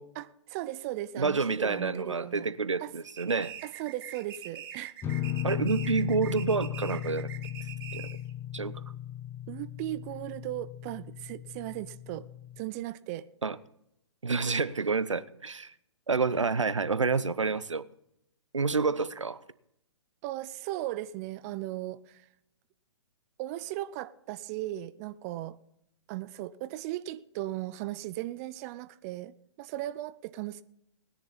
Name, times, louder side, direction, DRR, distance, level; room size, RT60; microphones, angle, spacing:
voice 1, 0.2-2.5 2.8-2.9 3.6-4.9 9.5-12.3 12.6-13.3 20.2-22.2 23.4-25.6 26.1-30.6, right 15 dB, 30° right, 0.6 m, -37 dB
voice 2, 1.2-3.5 5.4-7.3 7.9-8.1 8.5-8.8 13.4-13.6 14.2-15.7 16.1-17.9 18.5-19.4, right 4 dB, 90° right, 0.8 m, -28 dB
sound 1, 3.0-8.3, right 10 dB, 50° right, 1.5 m, -44 dB
sound 2, 5.0-12.6, left 12 dB, 15° left, 1.1 m, -36 dB
19.5 x 10.5 x 4.1 m
figure-of-eight pair, 125°, 15 cm